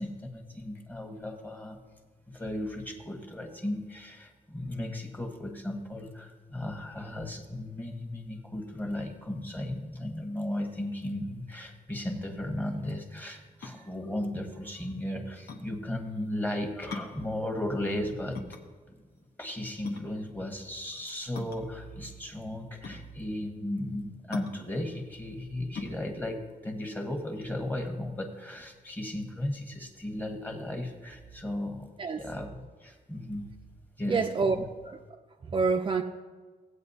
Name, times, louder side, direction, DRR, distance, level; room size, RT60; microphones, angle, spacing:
voice 1, 0.0-1.8 2.3-18.4 18.9-19.0 19.4-31.9 32.2-33.5 34.0-34.2 34.5-34.6, left 1 dB, 10° left, 2 dB, 1.3 m, -35 dB
sound 1, 13.6-27.8, left 4 dB, 80° left, 1.1 m, -44 dB
voice 2, 34.1-34.6 34.8-35.0 35.4-36.0, right 4 dB, 30° right, 3 dB, 0.4 m, -27 dB
17.0 x 8.5 x 2.7 m, 1.4 s
wide cardioid pair, 140°, 17 cm